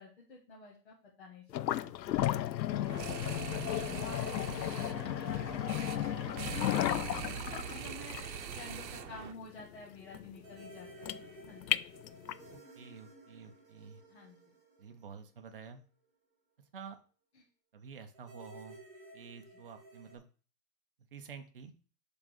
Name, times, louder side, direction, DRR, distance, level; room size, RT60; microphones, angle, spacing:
voice 1, 0.0-11.8 14.1-14.4 17.3-17.4 19.5-19.6, left 3 dB, 40° left, -3 dB, 1.7 m, -51 dB
sound 1, 1.5-12.5, left 13 dB, 90° left, 0.6 m, -35 dB
sound 2, 2.9-9.3, right 8 dB, 90° right, 1.0 m, -42 dB
voice 2, 3.0-3.6 12.5-14.0 14.8-15.8 16.7-17.0 17.7-18.8 19.1-20.2 21.1-21.7, right 6 dB, 35° right, 6 dB, 0.8 m, -50 dB
sound 3, 3.8-7.6 7.8-7.9 10.4-15.8 18.1-20.2, right 1 dB, 20° right, 1.8 m, -55 dB
7.2 x 4.0 x 6.3 m, 0.40 s
hypercardioid pair, 180°, 50 cm